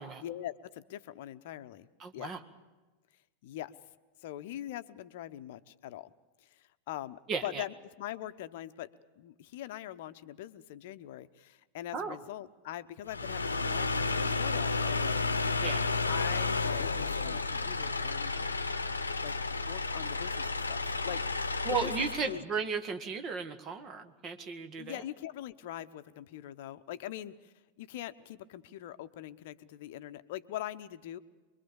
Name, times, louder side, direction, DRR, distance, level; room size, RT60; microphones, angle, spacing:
voice 1, 0.2-1.9 2.1-2.4 3.4-3.7 4.2-6.1 6.9-8.9 9.2-15.3 16.1-18.4 19.2-22.4 24.8-27.5 27.8-31.2, left 13 dB, 50° left, 12 dB, 0.9 m, -42 dB
voice 2, 2.0-2.4 7.3-7.6 11.9-12.2 15.6-15.9 21.6-25.0, right 5 dB, 30° right, 7 dB, 1.9 m, -35 dB
sound 1, 13.1-22.4, left 3 dB, 75° left, 1.0 m, -32 dB
25.0 x 22.5 x 7.1 m, 1.2 s
figure-of-eight pair, 90°, 0 cm